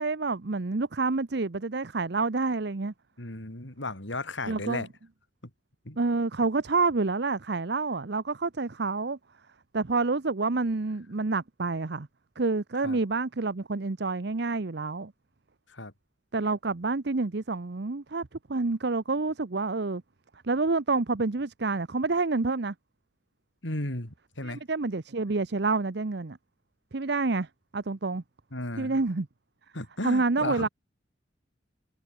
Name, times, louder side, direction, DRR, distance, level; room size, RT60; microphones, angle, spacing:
voice 1, 0.0-2.9 4.5-4.9 6.0-9.2 9.7-12.1 12.4-15.1 16.3-20.0 20.4-22.7 24.4-26.4 26.9-27.5 27.7-28.2 28.8-29.3 30.0-30.7, right 3 dB, 60° right, 0.8 m, -28 dB
voice 2, 3.2-4.9 5.8-6.0 12.8-13.0 15.7-15.9 23.6-24.6 28.5-29.0 29.7-30.7, left 2 dB, 80° left, 5.0 m, -35 dB
head